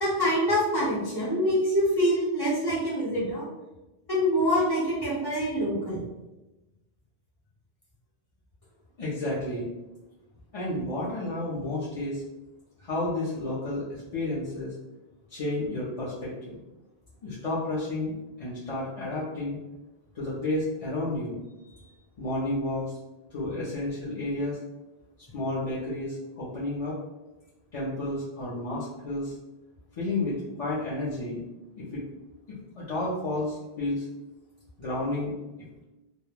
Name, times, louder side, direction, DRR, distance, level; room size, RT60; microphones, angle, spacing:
voice 1, 0.0-3.5 4.1-6.0, equal, 25° left, -6 dB, 0.8 m, -25 dB
voice 2, 9.0-9.7 10.5-12.2 12.8-14.7 15.3-16.6 17.2-19.6 20.1-21.9 22.2-23.0 23.3-24.6 25.3-27.0 27.7-29.3 30.0-31.4 31.8-32.0 32.5-34.1 34.8-35.3, left 2 dB, 45° left, -8 dB, 0.5 m, -31 dB
2.3 x 2.1 x 3.1 m, 1.0 s
omnidirectional pair, 1.1 m